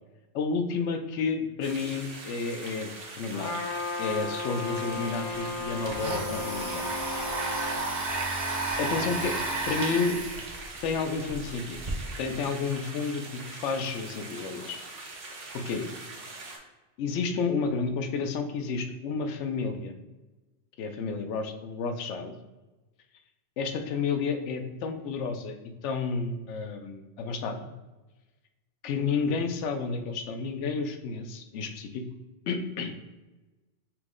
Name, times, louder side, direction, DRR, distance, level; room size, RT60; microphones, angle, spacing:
voice 1, 0.3-3.6 4.0-6.8 8.8-10.2 10.8-11.8 12.2-14.8 15.5-15.9 17.0-19.9 20.8-22.3 23.6-27.7 28.8-32.0 32.5-33.0, left 4 dB, 80° left, 7 dB, 0.9 m, -31 dB
sound 1, 1.6-16.6, right 3 dB, 80° right, 1.2 m, -43 dB
Trumpet, 3.3-7.9, left 3 dB, 60° left, 0.6 m, -35 dB
Domestic sounds home sounds, 5.4-11.9, right 2 dB, 45° right, 0.8 m, -33 dB
5.7 x 2.1 x 3.6 m, 1.1 s
omnidirectional pair, 1.2 m